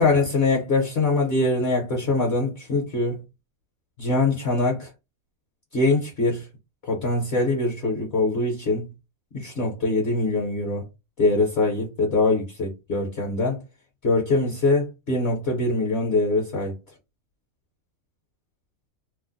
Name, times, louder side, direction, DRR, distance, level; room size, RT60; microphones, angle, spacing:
voice 1, 0.0-3.2 4.0-4.9 5.7-6.5 6.8-8.9 9.3-10.8 11.2-13.6 14.0-16.8, left 2 dB, 50° left, 1.0 m, -23 dB
2.8 x 2.1 x 3.8 m
omnidirectional pair, 1.6 m